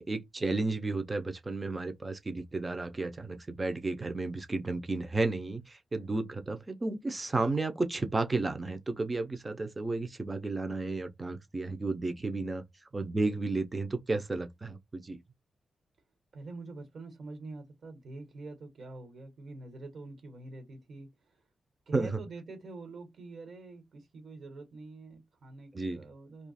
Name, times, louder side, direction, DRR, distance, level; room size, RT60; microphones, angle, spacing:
voice 1, 0.0-12.6 12.9-15.2 21.9-22.2 25.7-26.0, right 3 dB, 20° right, 0.5 m, -32 dB
voice 2, 16.3-21.1 21.9-26.5, right 3 dB, 60° right, 1.3 m, -45 dB
2.8 x 2.4 x 4.0 m
wide cardioid pair, 150°, 0 cm